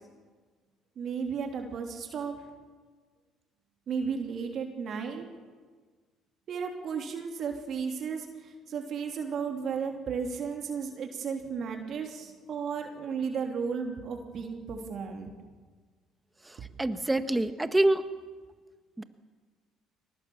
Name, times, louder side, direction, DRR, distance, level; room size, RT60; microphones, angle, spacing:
voice 1, 1.0-2.4 3.9-5.2 6.5-8.2 8.7-15.3, right 6 dB, 55° right, 3 dB, 3.1 m, -34 dB
voice 2, 16.5-18.0 19.0-19.1, right 1 dB, 15° right, 10 dB, 1.6 m, -26 dB
22.5 x 19.5 x 7.2 m, 1.5 s
hypercardioid pair, 65°, 0 cm